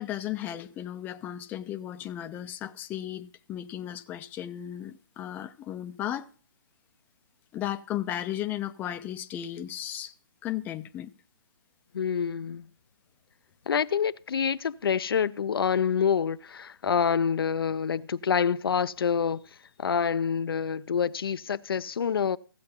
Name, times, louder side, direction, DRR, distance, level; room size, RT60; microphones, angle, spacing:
voice 1, 0.0-6.3 7.5-10.1 10.4-11.1, left 12 dB, 15° left, 0.4 m, -35 dB
voice 2, 11.9-12.7 13.7-19.4 19.8-22.4, left 7 dB, 75° left, 0.4 m, -27 dB
15.5 x 7.7 x 2.8 m
hypercardioid pair, 140°, 12 cm